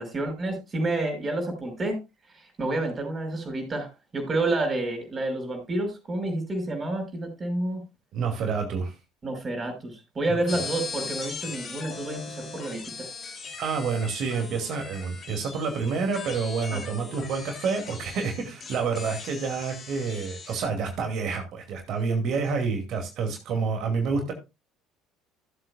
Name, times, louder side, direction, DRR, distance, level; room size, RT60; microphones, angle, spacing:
voice 1, 0.0-2.0 2.4-7.8 9.2-13.1 16.7-16.8, right 2 dB, 30° right, 4 dB, 5.7 m, -29 dB
voice 2, 8.1-8.9 10.6-10.7 13.6-24.3, right 5 dB, 55° right, 3 dB, 2.4 m, -28 dB
sound 1, 10.5-20.6, left 4 dB, 40° left, 2.8 m, -39 dB
16.0 x 8.0 x 2.3 m, 0.25 s
figure-of-eight pair, 60°, 0 cm